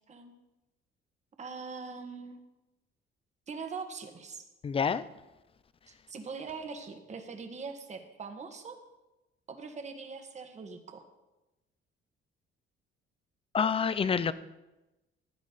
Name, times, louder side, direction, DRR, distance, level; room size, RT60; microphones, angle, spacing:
voice 1, 1.4-2.4 3.5-4.4 5.9-8.8 9.5-11.0, right 5 dB, 35° right, 1.7 m, -42 dB
voice 2, 4.6-5.0 13.5-14.3, left 6 dB, 25° left, 0.6 m, -27 dB
16.0 x 11.0 x 4.1 m
cardioid pair, 120°, 20 cm